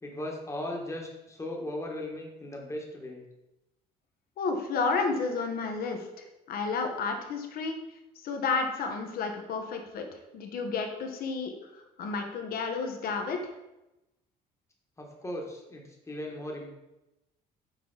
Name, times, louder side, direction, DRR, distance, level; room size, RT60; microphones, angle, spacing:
voice 1, 0.0-3.2 15.0-16.7, left 1 dB, 15° left, 0 dB, 1.3 m, -37 dB
voice 2, 4.4-7.7 8.2-10.0 10.3-13.5, left 4 dB, 60° left, 4 dB, 1.1 m, -31 dB
6.0 x 4.4 x 4.0 m, 0.95 s
cardioid pair, 110°, 17 cm